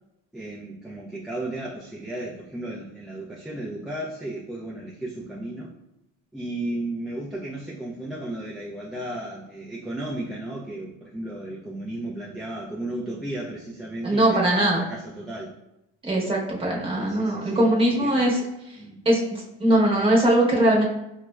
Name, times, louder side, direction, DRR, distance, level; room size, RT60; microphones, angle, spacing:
voice 1, 0.3-5.7 6.3-15.5 16.1-16.3 17.0-17.6 18.0-18.2 18.8-19.0, right 1 dB, ahead, -6 dB, 0.3 m, -34 dB
voice 2, 14.0-14.8 16.0-18.4 19.0-20.9, right 1 dB, 15° right, -4 dB, 0.9 m, -21 dB
4.9 x 2.1 x 2.2 m, 0.88 s
supercardioid pair, 115°, 31 cm